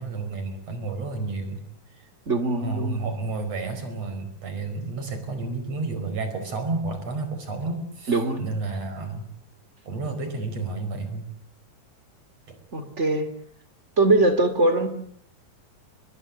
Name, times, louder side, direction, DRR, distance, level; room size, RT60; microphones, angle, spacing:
voice 1, 0.0-1.6 1.9-2.1 2.6-9.3 9.9-11.2 12.5-12.6, right 3 dB, 45° right, 8 dB, 5.8 m, -31 dB
voice 2, 2.3-3.0 8.1-8.4 12.7-13.3 14.0-14.9, right 2 dB, 20° right, 11 dB, 2.2 m, -21 dB
25.0 x 21.5 x 8.5 m, 0.65 s
omnidirectional pair, 4.2 m